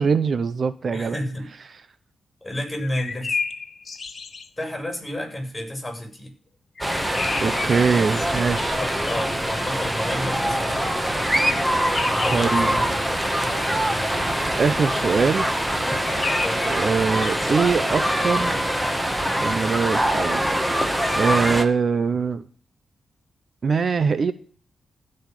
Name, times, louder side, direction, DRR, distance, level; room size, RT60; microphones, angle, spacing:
voice 1, 0.0-1.2 7.4-8.8 12.3-12.7 14.6-15.5 16.6-18.8 19.4-20.4 20.9-22.4 23.6-24.3, right 5 dB, 55° right, 14 dB, 0.8 m, -23 dB
voice 2, 0.9-1.5 2.4-3.4 4.6-6.3 8.5-11.0 12.2-13.0 16.4-16.8, left 1 dB, 15° left, 3 dB, 6.7 m, -31 dB
sound 1, 2.8-4.5 6.8-9.4 11.5-12.7 15.8-17.6, left 4 dB, 45° left, 1.6 m, -32 dB
sound 2, 6.8-21.7, equal, 10° right, 2.0 m, -24 dB
15.5 x 5.5 x 9.3 m, 0.43 s
cardioid pair, 70°, 0 cm